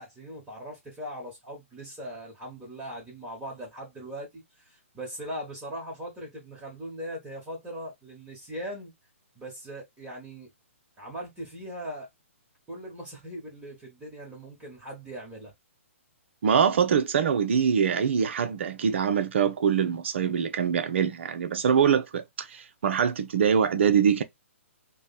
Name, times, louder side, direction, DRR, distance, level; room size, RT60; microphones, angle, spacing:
voice 1, 0.0-8.9 9.3-10.5 11.0-12.1 12.7-15.5, equal, 15° right, 1.3 m, -40 dB
voice 2, 16.4-24.2, right 7 dB, 55° right, 0.6 m, -24 dB
3.2 x 2.2 x 4.0 m
figure-of-eight pair, 130°, 7 cm